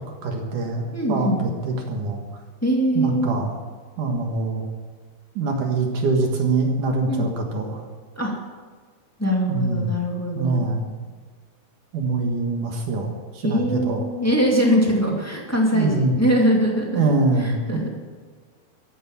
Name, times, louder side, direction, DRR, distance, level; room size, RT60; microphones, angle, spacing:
voice 1, 0.2-2.2 3.0-3.5 4.0-4.6 5.4-7.8 9.5-10.0 10.3-10.9 11.9-14.0 15.1-15.2 15.7-16.1 16.9-17.8, right 3 dB, 60° right, 2 dB, 2.8 m, -24 dB
voice 2, 0.9-1.4 2.6-3.3 7.1-7.3 8.1-8.3 9.2-10.6 13.4-17.0 17.4-17.9, equal, 15° left, -2 dB, 0.6 m, -22 dB
15.0 x 11.0 x 7.2 m, 1.5 s
omnidirectional pair, 4.7 m